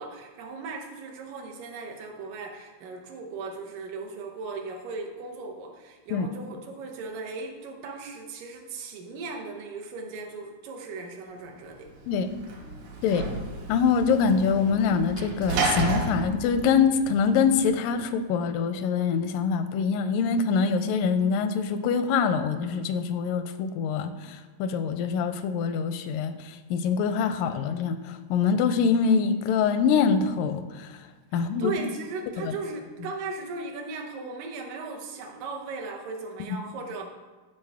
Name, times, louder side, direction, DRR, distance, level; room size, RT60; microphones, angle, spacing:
voice 1, 0.0-11.9 31.3-37.0, right 3 dB, 80° right, 2 dB, 2.5 m, -37 dB
Sliding door / Slam, 11.8-17.7, right 3 dB, 60° right, 1.8 m, -32 dB
voice 2, 13.7-31.0 31.3-31.7 32.4-32.5, left 6 dB, 85° left, 10 dB, 2.2 m, -24 dB
12.0 x 5.3 x 3.5 m, 1.3 s
omnidirectional pair, 3.8 m